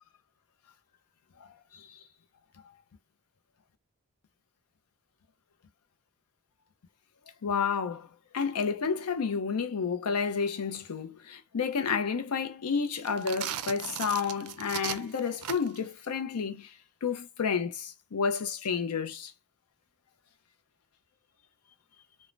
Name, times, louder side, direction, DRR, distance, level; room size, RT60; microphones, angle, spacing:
voice 1, 1.4-1.9 7.4-8.1 8.3-16.7 17.0-19.3, left 6 dB, 85° left, 0.5 m, -30 dB
sound 1, 13.0-15.9, right 11 dB, 90° right, 0.4 m, -37 dB
3.1 x 2.1 x 2.4 m
head